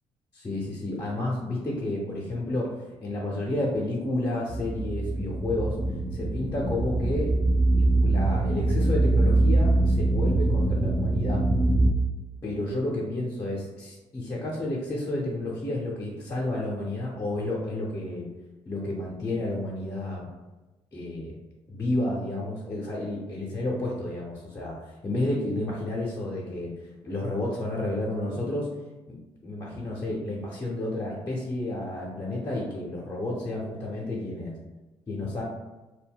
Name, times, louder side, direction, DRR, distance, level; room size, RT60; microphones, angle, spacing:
voice 1, 0.3-2.7 3.0-5.8 6.1-7.4 7.8-11.5 12.4-18.3 18.7-20.3 20.9-21.3 21.7-28.7 29.1-29.2 29.4-34.5 35.1-35.4, left 1 dB, 30° left, -4 dB, 0.7 m, -31 dB
sound 1, 4.5-11.9, right 2 dB, 20° right, 0.5 m, -23 dB
2.3 x 2.0 x 3.6 m, 1.1 s
hypercardioid pair, 50°, 13 cm